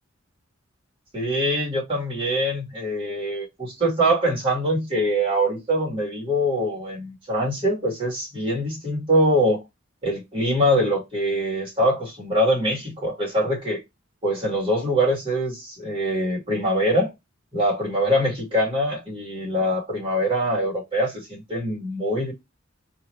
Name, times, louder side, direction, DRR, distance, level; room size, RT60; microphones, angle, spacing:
voice 1, 1.1-9.6 10.0-13.8 14.2-17.1 17.5-22.3, equal, 25° right, 2.2 m, -23 dB
3.4 x 2.9 x 3.2 m
head